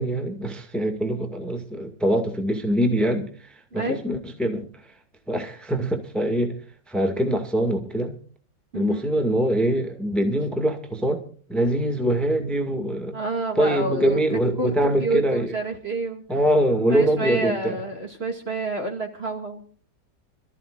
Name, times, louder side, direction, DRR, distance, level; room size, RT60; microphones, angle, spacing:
voice 1, 0.0-4.9 5.3-6.6 6.9-8.2 8.7-11.2 11.5-13.2 13.5-15.6 16.3-17.8, right 1 dB, ahead, 1.9 m, -24 dB
voice 2, 3.7-4.0 8.7-9.0 13.1-14.2 14.6-14.7 15.0-16.2 16.9-19.6, right 2 dB, 30° right, 2.4 m, -28 dB
27.0 x 14.0 x 2.5 m
omnidirectional pair, 2.1 m